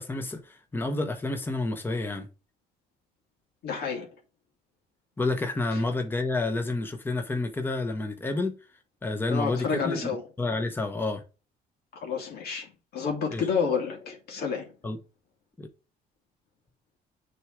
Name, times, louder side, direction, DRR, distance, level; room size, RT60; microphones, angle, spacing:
voice 1, 0.0-2.3 5.2-8.6 9.0-10.1 10.4-11.2 13.3-13.5 14.8-15.0 15.6-15.7, left 2 dB, 10° left, 1.2 m, -29 dB
voice 2, 3.6-4.1 5.7-5.8 9.3-10.2 11.9-14.7, left 6 dB, 70° left, 2.4 m, -30 dB
6.9 x 3.7 x 4.6 m
cardioid pair, 110°, 17 cm